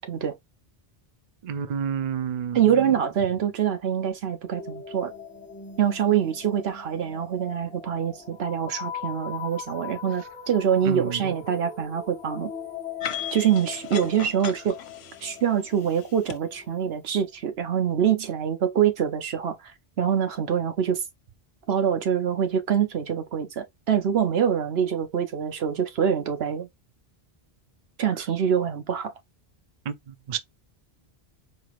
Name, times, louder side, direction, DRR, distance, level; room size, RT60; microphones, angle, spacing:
voice 1, 1.4-2.6 10.9-11.3 29.9-30.0 30.3-30.4, right 7 dB, 50° right, 0.6 m, -29 dB
voice 2, 2.5-5.1 5.8-12.5 13.3-14.8 15.2-19.6 20.0-21.0 21.7-26.7 28.0-29.1, right 8 dB, 75° right, 1.1 m, -25 dB
sound 1, 4.5-17.2, left 7 dB, 10° left, 0.8 m, -40 dB
sound 2, 13.0-16.4, left 9 dB, 80° left, 0.9 m, -37 dB
4.4 x 3.1 x 2.4 m
omnidirectional pair, 1.1 m